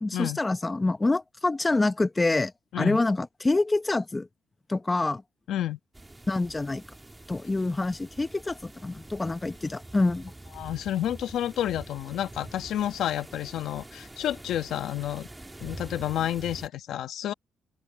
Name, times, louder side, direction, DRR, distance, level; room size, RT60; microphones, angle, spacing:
voice 1, 0.0-2.5 2.8-4.3 4.7-5.2 6.3-6.8 7.3-10.3, left 2 dB, 20° left, 1.0 m, -26 dB
voice 2, 5.5-5.8 10.6-15.3 15.6-17.3, left 11 dB, 80° left, 1.6 m, -30 dB
sound 1, 5.9-16.7, right 2 dB, 15° right, 1.8 m, -45 dB
open air
cardioid pair, 90°, 0 cm